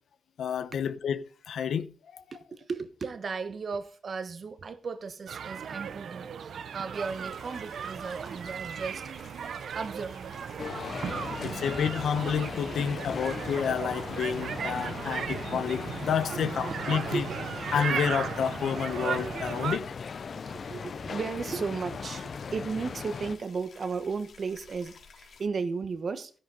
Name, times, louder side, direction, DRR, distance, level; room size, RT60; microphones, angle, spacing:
voice 1, 0.4-1.9 11.4-17.3 17.7-19.8, left 7 dB, 85° left, 1.1 m, -30 dB
voice 2, 2.3-9.1 9.7-10.7 16.3-17.3 20.3-26.3, right 5 dB, 45° right, 1.2 m, -35 dB
sound 1, 5.3-19.8, right 7 dB, 75° right, 0.7 m, -36 dB
sound 2, 6.9-25.4, left 5 dB, 65° left, 3.0 m, -54 dB
sound 3, 10.6-23.4, left 5 dB, 50° left, 0.5 m, -38 dB
16.0 x 10.0 x 4.0 m
wide cardioid pair, 135°, 0 cm